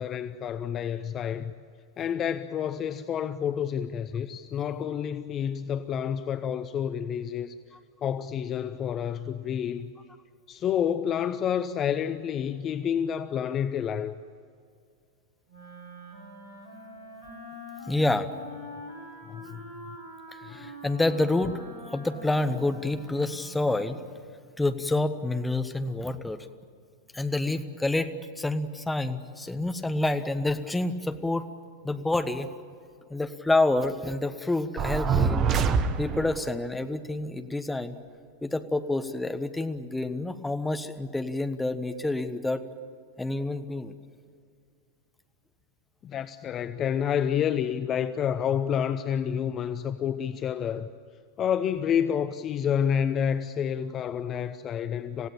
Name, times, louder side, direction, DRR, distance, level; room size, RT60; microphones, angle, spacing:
voice 1, 0.0-1.5 2.0-7.6 8.0-9.9 10.5-14.2 19.2-19.9 46.0-50.9 51.4-55.3, left 8 dB, 30° left, 0.7 m, -29 dB
Wind instrument woodwind instrument, 15.5-24.1, left 1 dB, 70° left, 7.2 m, -44 dB
voice 2, 17.9-18.3 20.4-21.6 21.9-24.0 24.6-26.5 27.1-31.5 31.8-32.5 33.1-35.5 36.0-38.0 38.4-42.6 43.2-43.9, left 2 dB, 5° left, 1.3 m, -28 dB
sound 1, 34.8-36.5, right 5 dB, 30° right, 1.2 m, -25 dB
27.5 x 16.5 x 8.9 m
figure-of-eight pair, 90°, 0 cm